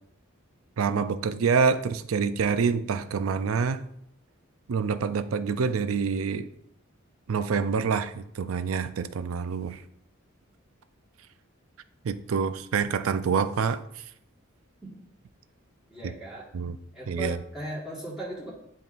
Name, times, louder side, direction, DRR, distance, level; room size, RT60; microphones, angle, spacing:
voice 1, 0.8-3.8 4.7-6.5 7.3-9.8 12.0-13.8 16.0-16.1 16.5-16.8 17.1-17.4, right 5 dB, 75° right, 12 dB, 0.4 m, -26 dB
voice 2, 15.9-16.4 16.9-18.5, right 1 dB, 5° right, -7 dB, 1.6 m, -37 dB
10.5 x 3.6 x 2.5 m, 0.75 s
head